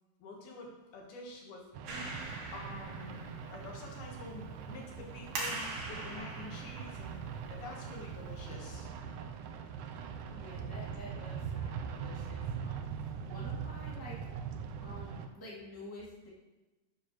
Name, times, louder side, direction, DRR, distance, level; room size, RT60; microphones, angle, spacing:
voice 1, 0.2-2.2 2.5-3.2 3.5-7.2 7.5-8.9, left 3 dB, 80° left, 0 dB, 3.4 m, -48 dB
sound 1, 1.7-15.3, right 7 dB, 90° right, 1.7 m, -42 dB
Clapping, 1.8-8.6, right 2 dB, 65° right, 3.3 m, -44 dB
voice 2, 10.3-14.2 14.8-16.3, left 1 dB, 5° left, -6 dB, 1.9 m, -49 dB
11.5 x 9.4 x 3.2 m, 1.1 s
omnidirectional pair, 4.3 m